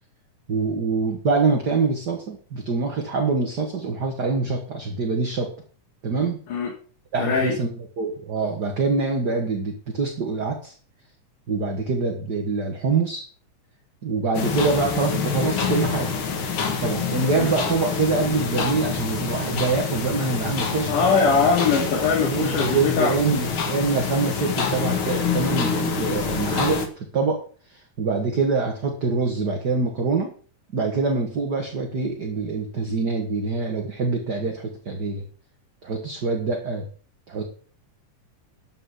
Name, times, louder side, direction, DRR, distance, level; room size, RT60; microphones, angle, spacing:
voice 1, 0.5-5.5 6.0-6.4 7.1-10.7 11.5-13.2 14.0-16.1 16.8-21.0 22.2-27.4 27.7-30.3 30.7-35.2 35.8-36.9 37.3-37.4, right 4 dB, 40° right, 1 dB, 1.8 m, -25 dB
voice 2, 7.1-7.6 17.4-17.5 20.9-23.1, left 5 dB, 75° left, -3 dB, 4.0 m, -21 dB
sound 1, 14.3-26.9, left 5 dB, 45° left, 2.1 m, -26 dB
12.5 x 5.5 x 8.0 m, 0.41 s
omnidirectional pair, 3.7 m